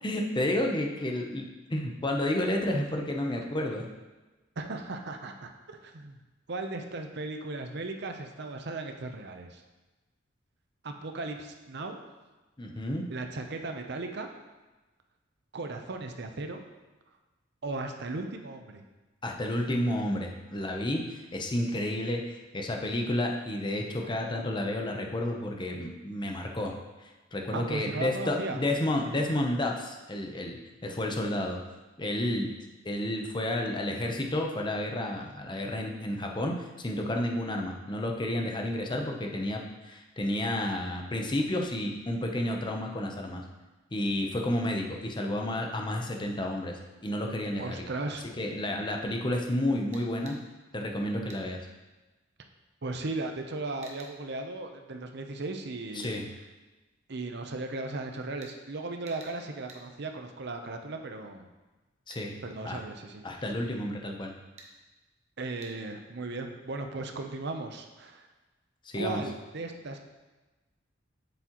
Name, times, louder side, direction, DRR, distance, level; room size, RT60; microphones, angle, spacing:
voice 1, 0.0-3.9 12.6-13.0 19.2-26.7 27.3-30.6 30.8-31.6 32.0-32.5 32.8-43.4 43.9-46.7 47.0-47.7 48.4-50.4 50.7-51.6 55.9-56.3 62.1-62.3 62.6-62.8 63.2-64.3 68.8-69.2, left 1 dB, 25° left, 1 dB, 0.8 m, -31 dB
voice 2, 4.6-6.2 6.5-9.6 10.8-12.0 13.1-14.3 15.5-16.6 17.6-18.8 27.5-28.6 47.6-48.3 52.8-56.1 57.1-61.5 62.4-63.5 65.4-68.3 68.9-70.0, right 2 dB, 60° right, 5 dB, 0.7 m, -37 dB
sound 1, 49.9-50.4 51.3-51.5 53.8-54.1 56.0-56.2 58.4-58.6 59.1-59.4 59.7-59.8 62.1-62.3 64.6-64.7 65.6-65.7, right 3 dB, 35° right, 1.0 m, -49 dB
7.5 x 7.1 x 3.0 m, 1.2 s
head